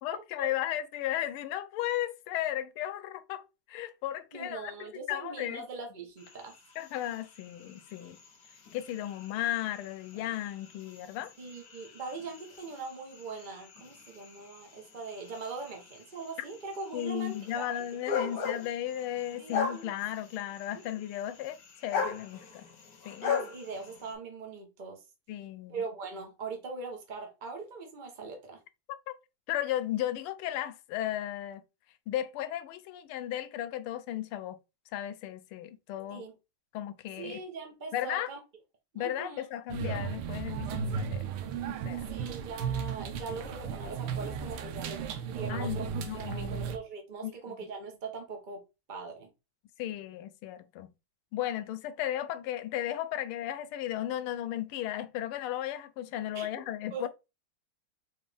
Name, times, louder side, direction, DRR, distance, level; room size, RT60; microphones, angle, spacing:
voice 1, 0.0-4.7 5.1-5.6 6.8-8.2 8.7-11.3 16.9-22.7 23.0-23.3 25.3-25.8 29.1-29.2 29.5-31.6 32.1-34.6 34.9-36.3 36.7-37.4 37.9-38.3 38.9-41.2 41.9-42.0 45.5-45.8 46.1-46.6 47.2-47.3 49.8-50.9 51.3-57.1, left 12 dB, 85° left, 1.4 m, -35 dB
voice 2, 4.3-6.5 11.4-17.8 18.2-18.4 19.4-19.9 23.2-25.0 25.7-28.6 36.1-36.3 37.2-38.4 38.9-39.5 42.1-45.0 45.3-45.9 46.3-48.6 48.9-49.3 56.3-56.5 56.9-57.1, right 4 dB, 70° right, 0.4 m, -41 dB
sound 1, 6.2-24.1, left 6 dB, 55° left, 1.1 m, -40 dB
sound 2, 39.7-46.8, right 6 dB, 85° right, 1.6 m, -35 dB
4.3 x 3.2 x 3.3 m
omnidirectional pair, 2.3 m